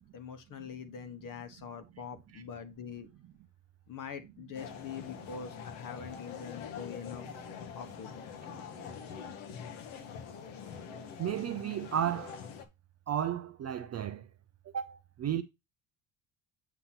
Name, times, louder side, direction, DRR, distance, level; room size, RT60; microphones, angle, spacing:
voice 1, 0.1-3.1 3.9-8.1, left 7 dB, 40° left, 1.1 m, -44 dB
sound 1, 4.5-12.6, left 7 dB, 75° left, 1.2 m, -45 dB
voice 2, 11.2-12.4 13.1-14.3 14.7-15.4, right 10 dB, 35° right, 0.4 m, -33 dB
8.0 x 2.9 x 5.7 m
cardioid pair, 145°, 48 cm